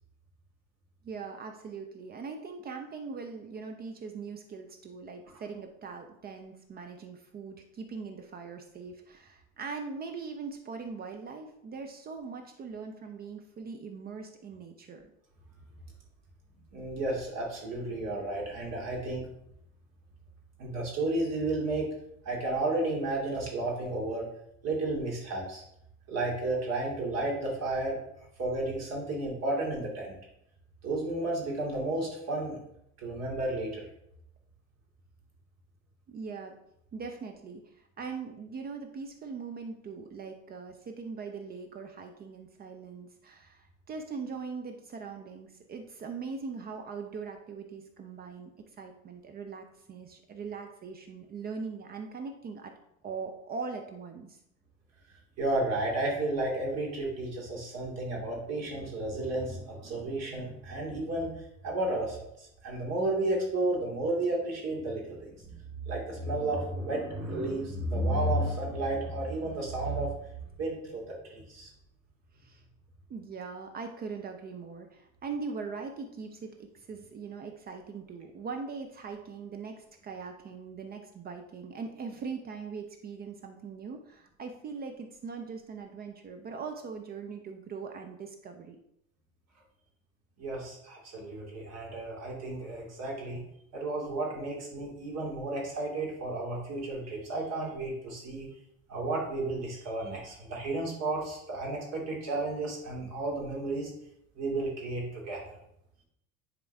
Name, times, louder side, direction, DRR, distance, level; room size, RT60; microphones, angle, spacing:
voice 1, 1.0-15.1 36.1-36.6 36.9-48.5 48.8-52.7 53.0-54.4 72.3-72.6 73.1-88.8, right 5 dB, 25° right, 5 dB, 0.6 m, -41 dB
voice 2, 16.7-19.3 20.6-22.0 22.2-24.2 24.6-25.6 26.1-28.0 28.4-30.2 30.8-32.6 33.0-33.9 55.4-61.3 61.6-65.5 65.8-71.7 90.4-93.4 93.7-98.5 98.9-103.9 104.4-105.6, right 2 dB, 40° right, -2 dB, 2.4 m, -32 dB
10.0 x 3.7 x 3.4 m, 0.76 s
figure-of-eight pair, 70°, 41 cm